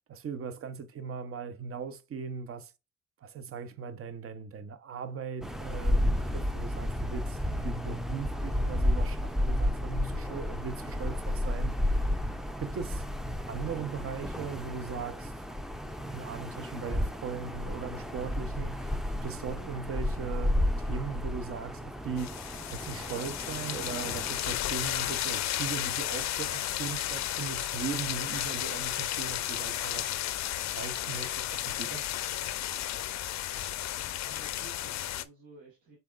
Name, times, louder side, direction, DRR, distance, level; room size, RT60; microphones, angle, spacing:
voice 1, 0.1-2.7 3.2-12.2 12.6-13.0 13.5-15.4 16.1-30.1 30.7-32.2, right 6 dB, 50° right, 0.7 m, -39 dB
sound 1, 5.4-24.4, left 1 dB, ahead, 0.4 m, -32 dB
sound 2, 22.2-35.2, left 13 dB, 65° left, 0.5 m, -33 dB
voice 2, 34.0-36.0, right 2 dB, 75° right, 1.6 m, -54 dB
5.7 x 3.9 x 2.4 m
cardioid pair, 90°, 30 cm